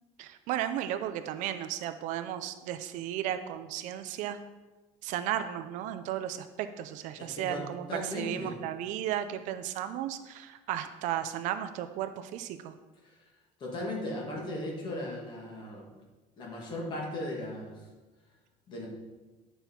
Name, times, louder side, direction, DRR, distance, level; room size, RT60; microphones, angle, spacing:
voice 1, 0.2-4.4 5.0-12.7, right 11 dB, 60° right, 9 dB, 0.5 m, -34 dB
voice 2, 7.2-7.6 7.9-8.5 13.0-13.2 13.6-15.9 16.4-17.8 18.7-18.9, left 1 dB, 35° left, -1 dB, 1.8 m, -37 dB
9.0 x 5.5 x 4.3 m, 1.2 s
cardioid pair, 170°, 14 cm